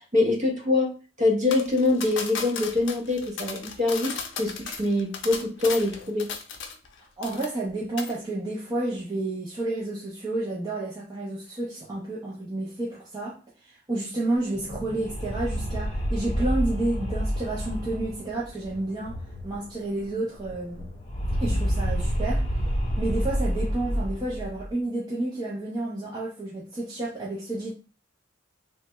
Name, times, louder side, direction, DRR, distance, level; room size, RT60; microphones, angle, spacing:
voice 1, 0.1-0.9 1.2-6.3, left 2 dB, 35° right, 0.9 m, -24 dB
sound 1, 1.5-6.9 7.2-7.7 8.0-8.2, left 6 dB, 60° left, 0.5 m, -36 dB
voice 2, 7.2-19.2 19.4-20.9 21.4-22.6 23.0-27.7, right 2 dB, 20° right, 0.5 m, -30 dB
sound 2, 14.4-19.7 20.0-20.1 20.3-24.7, equal, 35° left, 0.8 m, -29 dB
3.2 x 2.1 x 3.0 m
head